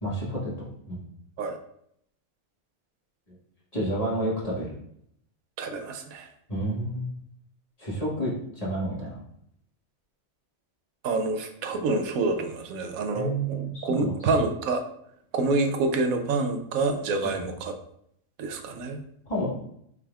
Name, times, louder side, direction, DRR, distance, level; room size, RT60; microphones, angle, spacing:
voice 1, 0.0-0.5 0.9-1.0 3.7-4.7 6.5-7.1 7.8-9.2 13.1-14.1 17.2-17.5 19.3-19.5, right 1 dB, 25° left, -7 dB, 1.6 m, -30 dB
voice 2, 5.6-6.3 11.0-14.8 15.3-17.7 18.4-19.0, right 3 dB, 85° right, 7 dB, 1.1 m, -27 dB
5.9 x 3.7 x 2.3 m, 0.70 s
omnidirectional pair, 1.4 m